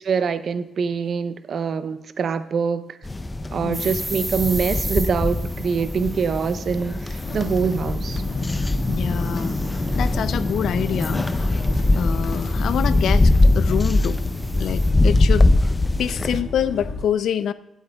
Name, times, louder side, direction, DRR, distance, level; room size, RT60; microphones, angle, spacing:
voice 1, 0.1-3.0 3.5-8.2, right 6 dB, 60° right, 0.5 m, -24 dB
sound 1, 3.0-16.4, left 2 dB, 20° left, 0.5 m, -22 dB
sound 2, 3.7-14.9, right 1 dB, 15° right, 1.3 m, -38 dB
sound 3, 7.3-17.0, left 2 dB, 55° left, 1.6 m, -33 dB
voice 2, 8.9-11.7 12.0-14.2 14.6-15.5 16.0-17.5, left 9 dB, 75° left, 0.4 m, -26 dB
19.0 x 8.0 x 2.3 m
cardioid pair, 90°, 0 cm